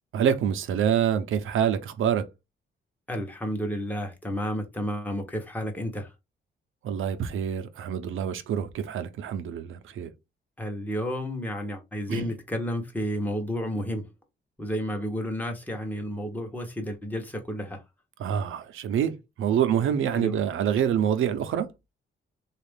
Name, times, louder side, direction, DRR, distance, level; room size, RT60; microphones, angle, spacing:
voice 1, 0.1-2.3 6.8-10.1 12.1-12.3 18.2-21.7, right 9 dB, 85° right, 0.7 m, -26 dB
voice 2, 3.1-6.1 10.6-14.0 14.6-17.8 20.1-20.4, equal, 10° left, 0.9 m, -31 dB
3.6 x 2.4 x 3.4 m
cardioid pair, 125°, 20 cm